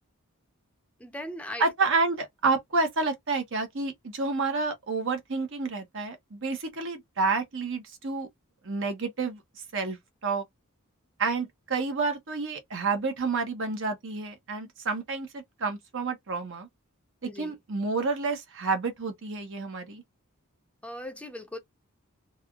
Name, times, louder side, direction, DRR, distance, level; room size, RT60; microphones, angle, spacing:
voice 1, 1.0-1.6 17.2-17.6 20.8-21.6, left 1 dB, 5° left, 0.6 m, -38 dB
voice 2, 1.6-8.3 8.6-9.4 9.7-10.0 10.2-10.4 11.2-16.7 17.2-20.0, right 4 dB, 60° right, 1.0 m, -29 dB
3.3 x 2.4 x 2.3 m
head